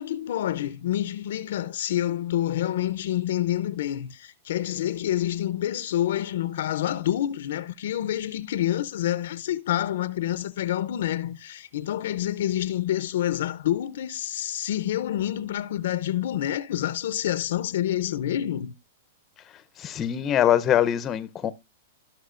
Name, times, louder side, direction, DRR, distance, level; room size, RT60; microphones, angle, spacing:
voice 1, 0.0-18.7, left 12 dB, 70° left, 0.6 m, -27 dB
voice 2, 19.8-21.5, left 10 dB, 25° left, 0.7 m, -23 dB
16.0 x 6.1 x 2.5 m
hypercardioid pair, 130°, 0 cm